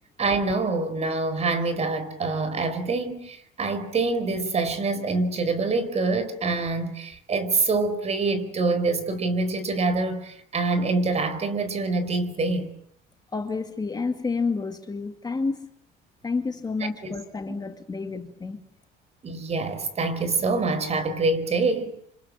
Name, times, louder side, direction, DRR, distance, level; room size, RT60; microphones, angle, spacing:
voice 1, 0.2-12.7 19.2-21.9, right 3 dB, 35° right, 4.4 m, -25 dB
voice 2, 13.3-15.7 16.2-18.6, left 4 dB, 20° left, 2.1 m, -29 dB
26.5 x 26.0 x 7.6 m
cardioid pair, 105°, 19 cm